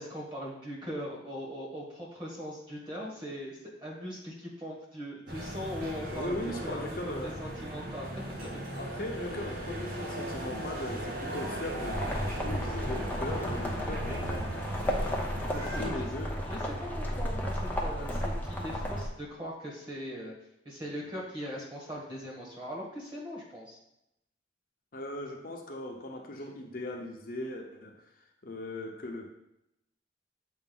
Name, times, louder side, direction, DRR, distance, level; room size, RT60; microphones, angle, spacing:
voice 1, 0.0-8.6 13.7-14.0 14.7-14.9 15.4-16.1 16.4-20.3 20.6-23.8, equal, 25° right, -4 dB, 1.6 m, -40 dB
sound 1, 5.3-15.9, right 1 dB, 50° right, 1.2 m, -37 dB
voice 2, 6.1-7.3 8.7-12.1 12.4-14.6 15.4-16.8 24.9-28.0 28.4-29.4, left 1 dB, 50° left, 1 dB, 0.7 m, -39 dB
sound 2, 11.9-19.1, equal, 10° left, 0.6 m, -33 dB
7.0 x 2.6 x 5.3 m, 0.83 s
head